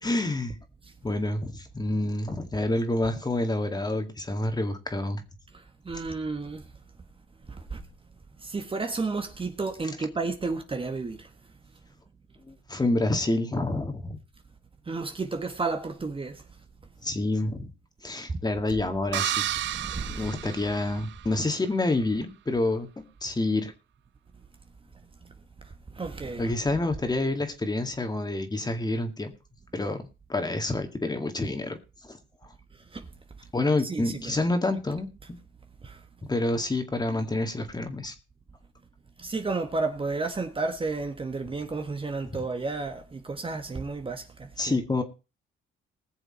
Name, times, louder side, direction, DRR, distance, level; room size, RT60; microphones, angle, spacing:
voice 1, 0.0-0.6 1.0-5.2 12.5-14.2 17.0-17.7 18.0-19.5 20.1-23.7 26.4-29.3 29.7-30.0 30.3-31.8 32.0-32.2 33.5-35.1 36.3-38.1 42.3-42.4 44.6-45.0, left 2 dB, 20° left, 2.2 m, -28 dB
voice 2, 5.5-6.6 7.5-7.8 8.4-11.3 14.9-16.4 18.3-18.4 19.6-20.3 25.9-26.5 32.9-33.1 33.8-34.3 35.8-36.0 39.2-44.8, right 3 dB, 25° right, 1.5 m, -32 dB
sound 1, 19.1-21.4, right 12 dB, 65° right, 0.6 m, -31 dB
20.0 x 6.9 x 4.3 m
cardioid pair, 90°, 20 cm